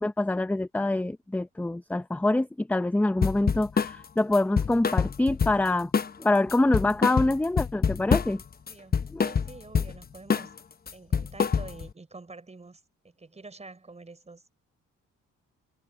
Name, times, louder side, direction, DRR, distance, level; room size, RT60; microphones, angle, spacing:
voice 1, 0.0-5.9 6.2-8.4 9.1-9.2, left 2 dB, 5° left, 0.6 m, -25 dB
sound 1, 3.2-4.0 4.3-5.7 5.9-6.2 6.5-8.4 8.7-9.9 10.3-10.6 10.9-11.9, left 6 dB, 30° left, 0.9 m, -26 dB
voice 2, 8.6-10.5 10.9-14.5, right 3 dB, 20° right, 5.3 m, -47 dB
cardioid pair, 90°, 30 cm